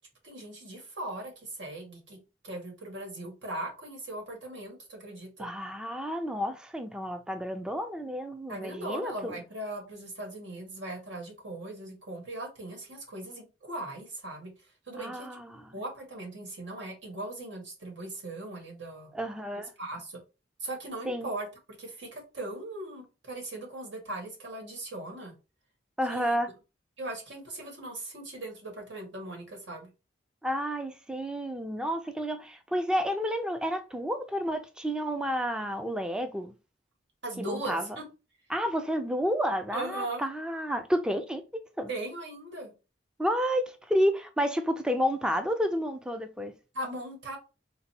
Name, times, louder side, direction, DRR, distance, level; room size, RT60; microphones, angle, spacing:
voice 1, 0.2-2.2 2.4-5.5 8.5-14.5 14.9-15.3 15.7-19.1 19.8-20.2 20.6-21.5 21.8-25.3 26.1-26.4 27.0-29.9 37.2-37.8 39.7-40.3 41.9-42.7 46.7-47.4, right 1 dB, 85° right, 1.8 m, -39 dB
voice 2, 5.4-9.4 15.0-15.7 19.1-19.7 21.1-21.3 26.0-26.5 30.4-36.5 37.4-37.9 38.5-41.4 41.8-41.9 43.2-46.5, equal, 5° right, 0.4 m, -30 dB
4.0 x 2.2 x 4.2 m
head